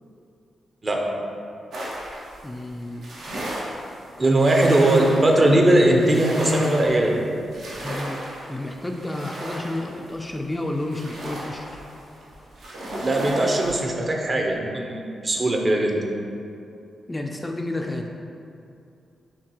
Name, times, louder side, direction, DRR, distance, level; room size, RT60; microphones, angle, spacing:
sound 1, 1.7-13.8, right 1 dB, 80° right, 0.7 m, -35 dB
voice 1, 2.4-3.1 4.2-4.4 7.7-8.2 8.5-11.7 17.1-18.1, left 1 dB, 15° left, 2 dB, 0.3 m, -31 dB
voice 2, 4.2-7.2 13.0-16.0, right 1 dB, 40° right, 1 dB, 0.6 m, -19 dB
5.8 x 2.3 x 3.0 m, 2.6 s
supercardioid pair, 55°, 0 cm